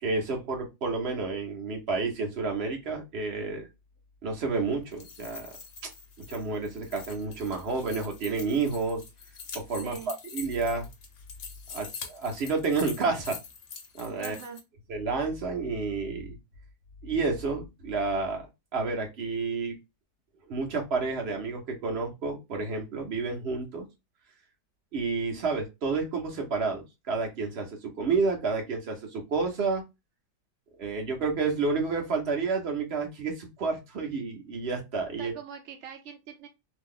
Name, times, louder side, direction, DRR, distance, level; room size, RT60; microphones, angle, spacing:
voice 1, 0.0-3.7 4.2-5.5 6.3-9.0 9.5-10.9 11.7-13.4 13.9-14.3 14.9-16.4 17.0-18.5 18.7-19.8 20.5-23.9 24.9-29.8 30.8-35.3, right 4 dB, 45° right, 2 dB, 1.0 m, -30 dB
sound 1, 4.8-14.6, left 5 dB, 55° left, 0.6 m, -44 dB
voice 2, 9.8-10.2 14.2-14.6 35.2-36.5, right 7 dB, 75° right, 5 dB, 0.6 m, -43 dB
2.8 x 2.4 x 3.7 m, 0.23 s
omnidirectional pair, 1.8 m